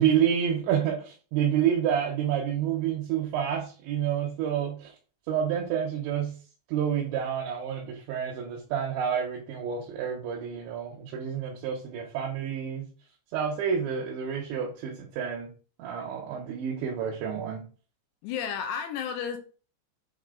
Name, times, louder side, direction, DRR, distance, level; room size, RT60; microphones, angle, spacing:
voice 1, 0.0-4.9 5.3-6.3 6.7-12.9 13.3-15.5 15.8-17.7, right 8 dB, 85° right, 3.3 m, -29 dB
voice 2, 18.2-19.4, left 7 dB, 80° left, 2.9 m, -32 dB
7.7 x 3.3 x 3.8 m
omnidirectional pair, 5.1 m